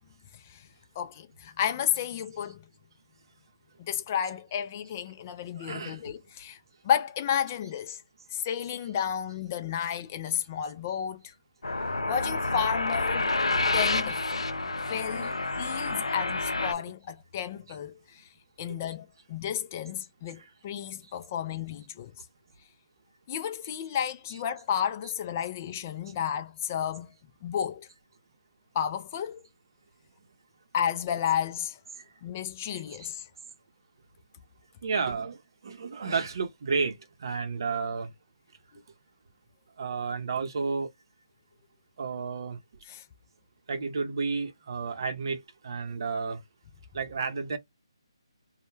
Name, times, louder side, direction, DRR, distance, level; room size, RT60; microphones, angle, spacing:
voice 1, 1.0-2.6 3.8-6.6 6.8-8.0 8.3-11.3 12.1-13.3 13.7-14.2 14.9-18.3 18.6-22.1 23.3-27.1 27.4-27.9 28.7-29.4 30.7-31.8 32.2-33.2 42.9-43.0, left 9 dB, 25° left, 0.3 m, -32 dB
voice 2, 5.6-6.0 24.3-24.4 34.8-35.4 35.6-37.0 37.2-38.1 39.8-40.9 42.0-42.6 43.7-46.4 46.9-47.6, right 5 dB, 50° right, 0.6 m, -31 dB
sound 1, 11.6-16.7, left 3 dB, 90° left, 0.5 m, -29 dB
2.1 x 2.1 x 3.0 m
figure-of-eight pair, 155°, 3 cm